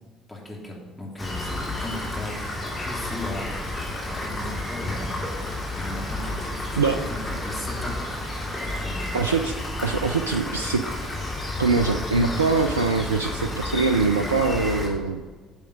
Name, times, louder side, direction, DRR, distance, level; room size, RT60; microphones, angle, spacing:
voice 1, 0.3-2.6 2.9-3.6 4.1-7.0 7.3-7.9 8.6-9.0, left 1 dB, 10° left, -2 dB, 2.8 m, -37 dB
Rain, 1.2-14.9, left 2 dB, 25° left, 3.0 m, -31 dB
voice 2, 9.1-10.8 11.6-15.2, right 4 dB, 80° right, 7 dB, 0.4 m, -23 dB
9.0 x 7.3 x 5.3 m, 1.4 s
figure-of-eight pair, 55°, 0 cm